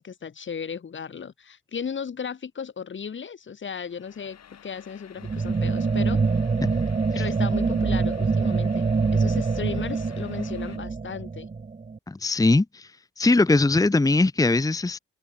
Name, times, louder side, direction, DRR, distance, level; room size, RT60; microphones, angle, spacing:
voice 1, 0.0-6.2 7.1-11.5, left 6 dB, 40° left, 1.9 m, -35 dB
sound 1, 3.8-10.8, left 9 dB, 55° left, 5.0 m, -51 dB
sound 2, 5.2-12.0, right 4 dB, 25° right, 1.5 m, -25 dB
voice 2, 12.1-12.9 13.2-15.0, left 2 dB, 10° left, 1.1 m, -21 dB
open air
cardioid pair, 90°, 30 cm